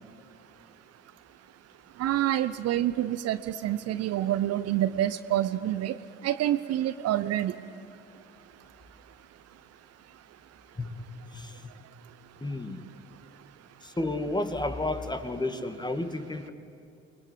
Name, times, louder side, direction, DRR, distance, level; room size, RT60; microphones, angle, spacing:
voice 1, 2.0-6.0 6.2-7.5, right 12 dB, 50° right, 13 dB, 0.9 m, -27 dB
voice 2, 11.3-11.7 12.4-12.8 13.8-16.5, left 2 dB, 15° left, 9 dB, 2.3 m, -32 dB
28.0 x 21.0 x 9.6 m, 2.7 s
figure-of-eight pair, 45°, 32 cm